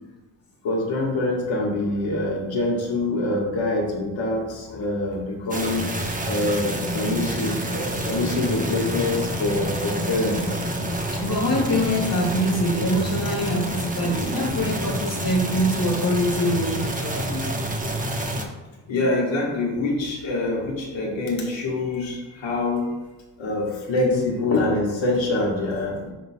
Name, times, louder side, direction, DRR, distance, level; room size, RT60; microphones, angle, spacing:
voice 1, 0.6-5.9 6.2-10.6 18.9-22.9 23.4-26.1, left 2 dB, 70° left, -1 dB, 1.5 m, -25 dB
sound 1, 5.5-18.5, right 1 dB, 15° right, 1.1 m, -28 dB
voice 2, 11.2-17.6, equal, 45° left, -3 dB, 1.7 m, -24 dB
10.5 x 3.9 x 2.3 m, 1.2 s
supercardioid pair, 45°, 47 cm